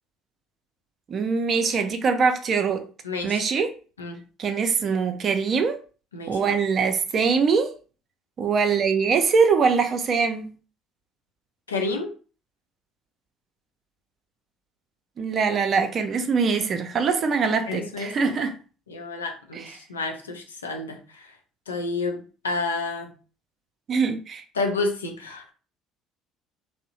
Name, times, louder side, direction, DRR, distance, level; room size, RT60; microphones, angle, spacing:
voice 1, 1.1-2.8 3.2-3.7 4.4-5.8 6.3-7.7 8.4-10.5 15.2-18.5 19.5-19.7 23.9-24.4, right 5 dB, 45° right, 0.4 m, -23 dB
voice 2, 3.0-3.4 4.0-4.2 6.1-6.5 11.7-12.1 17.7-18.3 18.9-21.3 21.7-23.1 24.5-25.5, left 3 dB, 90° left, 0.4 m, -30 dB
2.7 x 2.0 x 2.8 m
hypercardioid pair, 55°, 0 cm